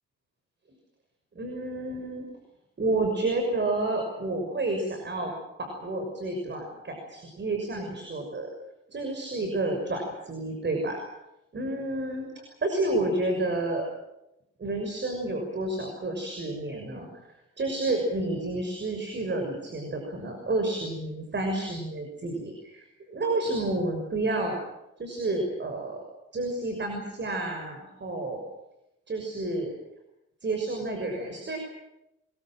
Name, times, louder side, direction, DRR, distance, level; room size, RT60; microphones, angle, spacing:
voice 1, 1.3-2.2 2.8-5.3 5.6-8.5 8.9-11.0 11.5-13.9 14.6-17.3 17.6-24.6 25.0-26.0 26.3-28.4 29.1-29.7 30.4-31.6, right 2 dB, 35° right, 4 dB, 6.4 m, -30 dB
24.5 x 22.5 x 7.7 m, 0.88 s
cardioid pair, 90°, 30 cm